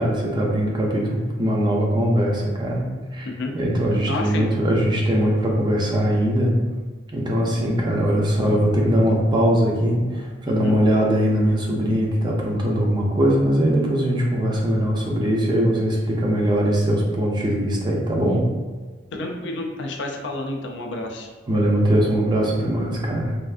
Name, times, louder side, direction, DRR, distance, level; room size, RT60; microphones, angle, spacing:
voice 1, 0.0-2.9 3.1-3.3 3.5-6.5 7.1-18.4 21.5-23.4, equal, 25° right, -2 dB, 0.5 m, -21 dB
voice 2, 4.1-4.5 10.5-10.8 19.1-21.3, left 2 dB, 65° left, 2 dB, 0.4 m, -29 dB
3.2 x 2.5 x 2.4 m, 1.4 s
head